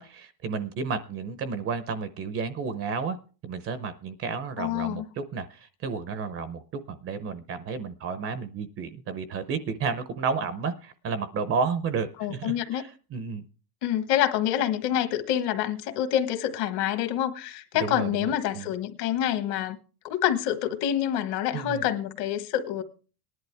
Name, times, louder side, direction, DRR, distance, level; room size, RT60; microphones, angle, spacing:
voice 1, 0.0-3.2 3.4-13.4 17.7-18.7 21.5-21.8, right 5 dB, 30° right, 0.6 m, -32 dB
voice 2, 4.6-5.0 12.2-12.8 13.8-19.8 20.0-22.8, left 11 dB, 55° left, 1.5 m, -27 dB
19.0 x 11.0 x 3.3 m
cardioid pair, 170°, 50 cm